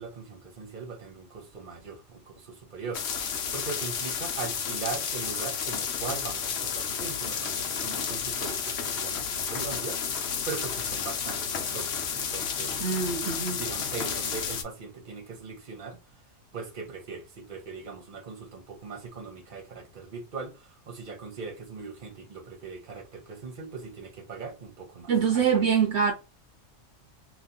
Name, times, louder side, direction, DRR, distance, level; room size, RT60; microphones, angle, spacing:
voice 1, 0.0-10.0 10.5-12.7 13.5-16.0 16.5-25.7, right 5 dB, 45° right, 1.1 m, -40 dB
sound 1, 2.9-14.6, left 7 dB, 60° left, 0.9 m, -31 dB
voice 2, 12.8-13.6 25.1-26.1, right 7 dB, 65° right, 1.0 m, -24 dB
2.9 x 2.4 x 3.6 m
omnidirectional pair, 1.3 m